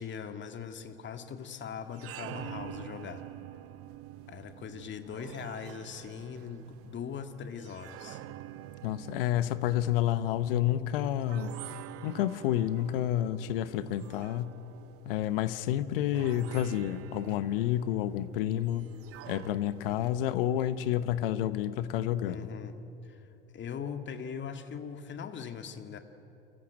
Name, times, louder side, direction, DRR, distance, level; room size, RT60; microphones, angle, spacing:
voice 1, 0.0-3.2 4.3-8.2 22.2-22.7 23.0-26.0, left 7 dB, 40° left, 8 dB, 1.9 m, -41 dB
sound 1, 1.8-20.4, right 14 dB, 50° right, 0.9 m, -47 dB
voice 2, 8.8-11.6 12.0-14.5 15.1-18.9 19.3-22.5, left 12 dB, 70° left, 15 dB, 1.0 m, -29 dB
28.5 x 14.5 x 9.5 m, 2.9 s
hypercardioid pair, 70°, 29 cm